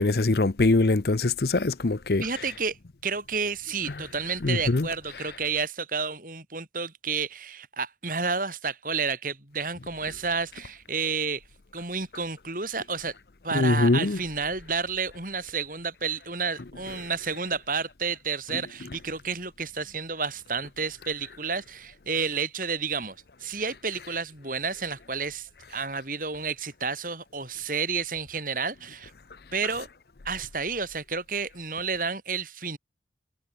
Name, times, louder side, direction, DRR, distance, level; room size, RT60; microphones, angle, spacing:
voice 1, 0.0-2.2 4.4-4.9 13.5-14.2, left 2 dB, 60° left, 0.8 m, -22 dB
voice 2, 2.2-2.8 3.0-11.4 11.7-13.1 13.4-29.1 29.5-29.9 30.3-32.8, right 5 dB, 50° right, 7.1 m, -31 dB
head